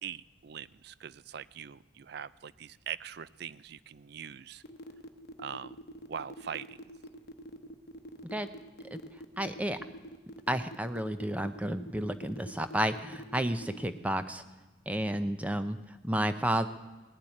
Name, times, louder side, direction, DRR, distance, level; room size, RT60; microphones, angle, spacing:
voice 1, 0.0-4.6 5.4-5.8 6.1-6.8, right 8 dB, 55° right, 18 dB, 0.4 m, -42 dB
sound 1, 4.6-14.0, equal, 55° left, 1.0 m, -46 dB
voice 2, 9.4-9.8 10.5-14.4 14.9-15.8 16.0-16.7, right 1 dB, 5° right, 10 dB, 0.6 m, -31 dB
18.0 x 7.4 x 9.9 m, 1.2 s
head